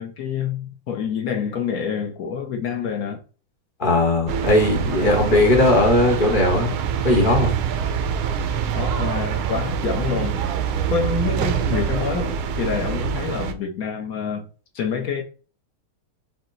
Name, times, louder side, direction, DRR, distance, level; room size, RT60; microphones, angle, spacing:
voice 1, 0.0-3.2 5.0-5.2 8.7-10.4 10.9-14.5 14.7-15.2, left 6 dB, 60° left, 0.9 m, -27 dB
voice 2, 3.8-6.8 7.0-7.6, left 2 dB, 30° left, 1.0 m, -18 dB
sound 1, 4.3-13.5, right 7 dB, 85° right, 1.4 m, -25 dB
6.0 x 2.2 x 3.9 m
omnidirectional pair, 2.3 m